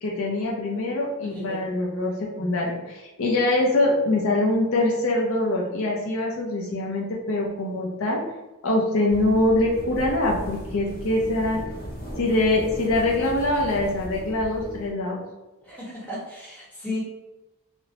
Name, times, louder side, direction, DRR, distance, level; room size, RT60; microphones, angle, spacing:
voice 1, 0.0-8.2 8.6-11.6 12.2-15.2, left 2 dB, 60° left, -2 dB, 0.4 m, -24 dB
voice 2, 1.2-1.6 15.6-17.0, left 1 dB, 5° left, -8 dB, 1.0 m, -34 dB
sound 1, 9.1-14.9, equal, 40° left, 0.9 m, -37 dB
2.9 x 2.0 x 2.7 m, 1.0 s
head